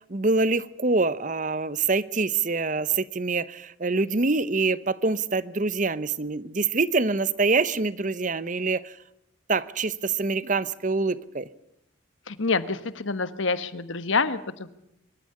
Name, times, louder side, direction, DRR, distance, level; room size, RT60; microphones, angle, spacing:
voice 1, 0.1-8.9 9.5-11.5, right 3 dB, 40° right, 0.8 m, -25 dB
voice 2, 12.3-14.7, left 4 dB, 70° left, 1.3 m, -27 dB
24.5 x 13.0 x 9.9 m
head